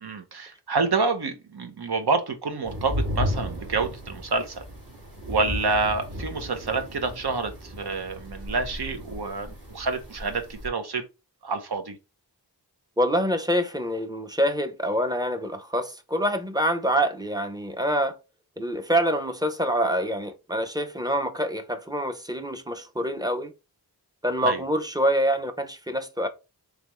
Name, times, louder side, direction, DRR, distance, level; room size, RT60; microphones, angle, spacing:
voice 1, 0.0-4.6 5.3-11.1 11.4-12.0 24.4-24.6, right 3 dB, 70° right, 0.9 m, -28 dB
sound 1, 2.6-10.7, left 1 dB, 55° right, 1.8 m, -34 dB
voice 2, 13.0-18.2 18.6-23.5 24.2-26.3, equal, 10° right, 0.6 m, -26 dB
3.7 x 3.3 x 3.0 m
wide cardioid pair, 65°, 40 cm